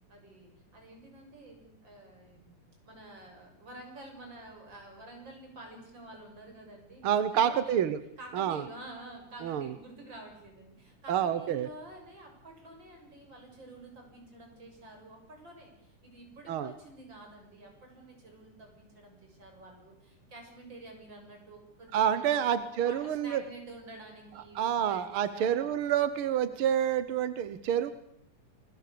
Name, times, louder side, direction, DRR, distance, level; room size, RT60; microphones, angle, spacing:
voice 1, 0.1-2.5 2.8-7.8 8.2-22.5 22.8-25.9, right 2 dB, 35° right, 2 dB, 7.7 m, -49 dB
voice 2, 7.0-8.0 8.3-8.6 9.4-9.7 11.1-11.7 16.5-16.7 21.9-23.4 24.5-27.9, right 9 dB, 60° right, 12 dB, 1.4 m, -28 dB
29.5 x 21.5 x 6.9 m, 0.77 s
omnidirectional pair, 3.6 m